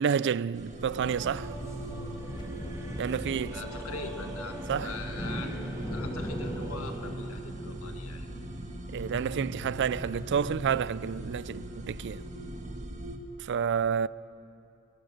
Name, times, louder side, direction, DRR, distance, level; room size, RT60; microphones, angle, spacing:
voice 1, 0.0-1.6 3.0-3.6 4.7-4.9 8.9-12.2 13.4-14.1, right 7 dB, 55° right, 0.4 m, -29 dB
sound 1, 0.5-13.2, right 1 dB, 35° right, 1.5 m, -40 dB
sound 2, 0.7-7.0, right 1 dB, 15° right, 2.1 m, -44 dB
sound 3, 0.9-12.8, equal, 20° left, 1.3 m, -43 dB
voice 2, 3.5-5.5 5.9-8.3, left 3 dB, 85° left, 1.7 m, -42 dB
29.0 x 15.0 x 6.7 m
head